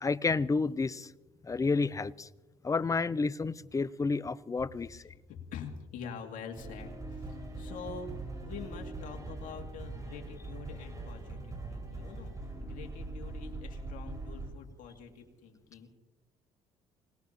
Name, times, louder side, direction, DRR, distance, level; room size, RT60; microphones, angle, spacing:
voice 1, 0.0-1.1 1.4-2.3 2.6-5.0, left 4 dB, 20° left, 19 dB, 0.6 m, -30 dB
voice 2, 5.3-15.9, left 6 dB, 65° left, 3 dB, 2.4 m, -46 dB
sound 1, 6.6-14.5, right 2 dB, 25° right, 5.2 m, -42 dB
26.5 x 18.5 x 2.9 m, 1.1 s
supercardioid pair, 65°, 15 cm